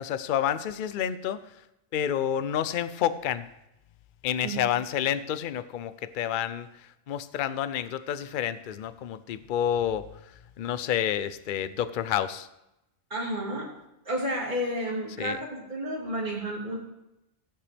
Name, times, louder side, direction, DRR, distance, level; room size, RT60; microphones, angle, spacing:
voice 1, 0.0-1.4 1.9-3.4 4.2-6.7 7.1-10.1 10.6-12.5 15.2-15.4, left 10 dB, 55° left, 14 dB, 0.7 m, -29 dB
voice 2, 13.1-13.7 14.0-16.8, right 1 dB, 40° right, -4 dB, 3.1 m, -31 dB
16.5 x 8.8 x 3.4 m, 0.88 s
omnidirectional pair, 1.2 m